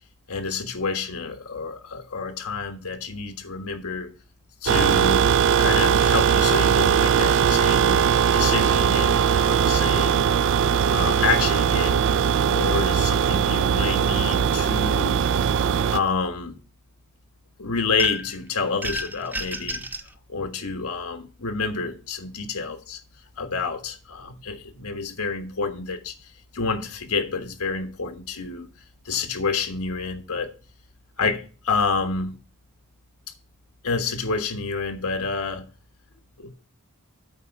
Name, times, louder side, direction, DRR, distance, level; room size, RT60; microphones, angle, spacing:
voice 1, 0.3-4.1 4.6-5.3 5.6-8.0 8.3-10.3 10.9-12.0 12.5-15.3 15.9-16.6 17.6-19.8 20.3-23.0 23.4-28.7 29.0-30.5 31.2-32.4 33.8-35.7 36.4-36.5, left 4 dB, 80° left, 1.5 m, -28 dB
sound 1, 4.6-16.0, right 7 dB, 55° right, 0.3 m, -20 dB
sound 2, 18.0-18.4 18.8-20.1, equal, 10° right, 0.5 m, -31 dB
8.7 x 4.4 x 7.0 m
head